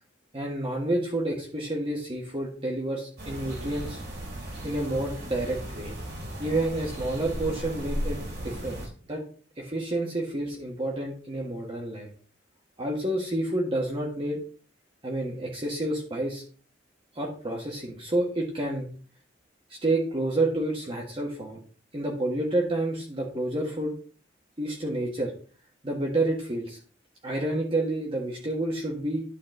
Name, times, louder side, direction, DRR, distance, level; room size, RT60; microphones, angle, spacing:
voice 1, 0.3-4.0 4.6-5.9 6.4-8.8 9.0-9.2 9.6-12.1 12.8-14.4 15.0-16.4 17.1-18.9 19.8-21.6 21.9-23.9 24.6-25.3 25.8-26.8 27.2-29.2, right 1 dB, 30° right, -2 dB, 1.6 m, -29 dB
sound 1, 3.2-8.9, equal, 60° right, 2.8 m, -36 dB
12.0 x 4.2 x 4.0 m, 0.40 s
head